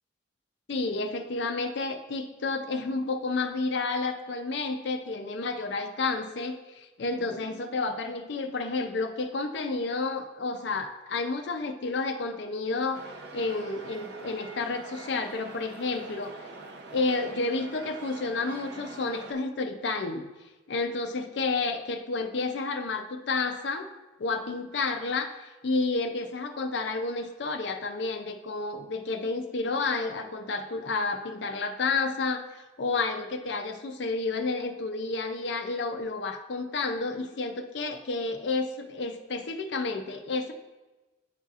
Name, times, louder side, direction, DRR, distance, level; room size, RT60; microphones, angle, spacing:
voice 1, 0.7-16.3 16.9-20.3 20.7-23.9 24.2-40.5, left 3 dB, 60° left, 5 dB, 0.5 m, -30 dB
sound 1, 12.9-19.3, right 2 dB, 60° right, 0.7 m, -44 dB
10.0 x 4.1 x 2.4 m, 1.1 s
head